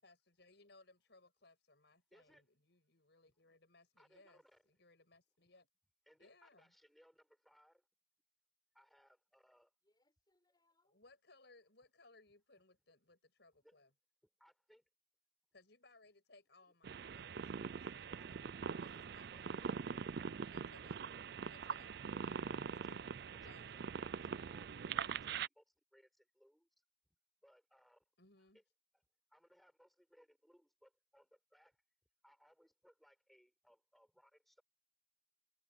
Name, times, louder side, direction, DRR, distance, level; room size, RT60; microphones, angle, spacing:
voice 1, 0.0-5.7 6.2-6.7 10.9-13.9 15.5-19.7 20.4-21.0 21.4-22.4 22.9-23.0 23.4-23.8 28.2-28.6, left 2 dB, 60° left, 7.1 m, -66 dB
voice 2, 2.1-2.5 3.3-3.4 4.0-4.6 6.1-7.8 8.7-9.7 13.6-13.8 14.4-14.9 18.1-18.4 18.7-19.0 19.3-20.0 20.5-21.5 22.1-23.0 23.3-25.6 25.9-26.7 27.4-28.0 28.5-28.6 28.9-29.0 29.3-31.8 32.2-34.6, equal, ahead, 4.7 m, -69 dB
voice 3, 9.8-11.0, left 1 dB, 20° left, 6.4 m, -79 dB
sound 1, 16.8-25.5, right 6 dB, 55° right, 0.4 m, -43 dB
head